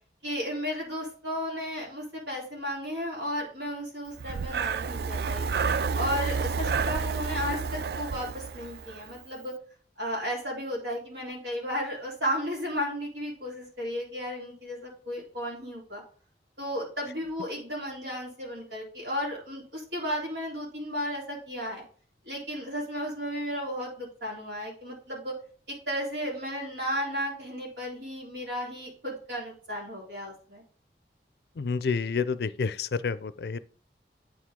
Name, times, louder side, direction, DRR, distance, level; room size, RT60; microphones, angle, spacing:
voice 1, 0.2-5.5 5.9-9.5 10.0-16.0 16.6-21.8 22.3-25.4 25.7-30.6, equal, 90° right, 3.8 m, -34 dB
Breathing, 4.2-9.1, right 5 dB, 60° right, 0.3 m, -30 dB
voice 2, 31.6-33.6, left 5 dB, 65° left, 0.4 m, -29 dB
8.9 x 4.8 x 3.7 m
head